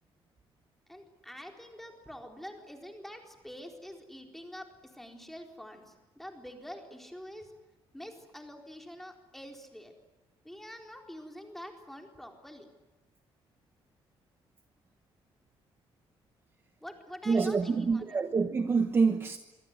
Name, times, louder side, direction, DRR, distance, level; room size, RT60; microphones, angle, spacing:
voice 1, 0.9-7.5 7.9-9.9 10.4-12.7 16.8-18.2, equal, 5° left, 2 dB, 4.1 m, -46 dB
voice 2, 17.3-19.4, right 4 dB, 25° right, 8 dB, 1.1 m, -26 dB
25.5 x 25.5 x 9.3 m, 1.2 s
cardioid pair, 180°, 10 cm